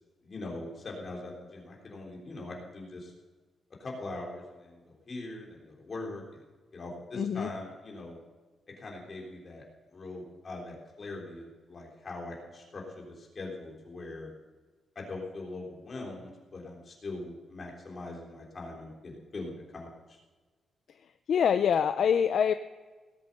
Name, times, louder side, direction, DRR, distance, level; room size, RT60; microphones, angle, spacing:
voice 1, 0.2-3.1 3.8-6.4 6.7-8.2 8.8-9.6 9.9-14.3 15.0-20.2, left 2 dB, 30° left, -1 dB, 3.6 m, -41 dB
voice 2, 7.1-7.5 21.3-22.5, left 7 dB, 55° left, 10 dB, 0.5 m, -25 dB
18.5 x 8.3 x 6.7 m, 1.3 s
wide cardioid pair, 175°, 0 cm